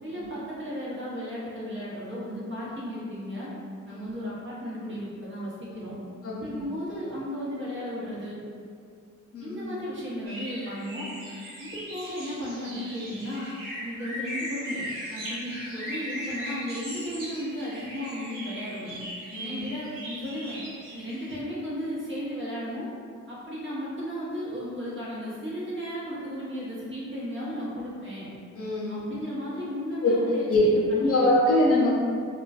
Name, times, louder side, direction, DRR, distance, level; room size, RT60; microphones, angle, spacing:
voice 1, 0.0-3.5 3.9-6.0 6.3-8.4 9.4-11.1 11.6-13.5 13.8-19.0 19.4-20.6 20.9-22.9 23.3-28.3 28.9-31.3, equal, 40° right, -7 dB, 0.7 m, -35 dB
voice 2, 6.2-6.6 9.3-9.6 19.3-19.7 28.6-29.0 30.0-30.1 30.5-30.6 31.0-31.9, left 2 dB, 50° left, -6 dB, 0.6 m, -24 dB
sound 1, 10.3-21.3, equal, 85° right, 0.8 m, -38 dB
2.5 x 2.2 x 2.3 m, 2.2 s
cardioid pair, 95°, 31 cm